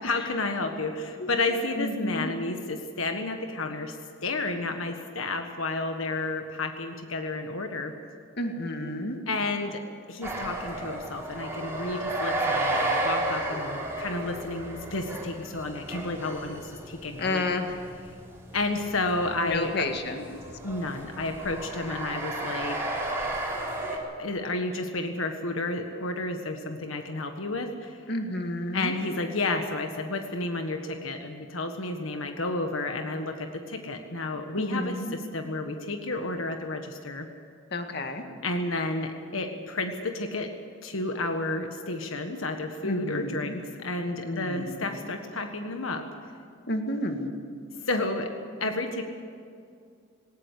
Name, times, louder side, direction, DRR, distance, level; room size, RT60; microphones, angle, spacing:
voice 1, 0.0-7.9 9.3-9.8 10.1-17.5 18.5-19.9 20.6-22.8 24.2-28.0 28.7-37.3 38.4-40.5 40.8-46.1 47.9-48.3 48.6-49.0, left 2 dB, 85° left, 5 dB, 1.6 m, -31 dB
voice 2, 1.8-2.3 8.4-9.2 17.2-17.8 19.4-20.2 28.1-28.9 34.6-35.2 37.7-38.3 42.8-43.5 44.2-44.9 46.7-47.3, left 1 dB, 55° left, 5 dB, 2.0 m, -31 dB
sound 1, 10.2-24.0, right 2 dB, 15° right, 4.3 m, -33 dB
19.5 x 19.0 x 8.3 m, 2.3 s
head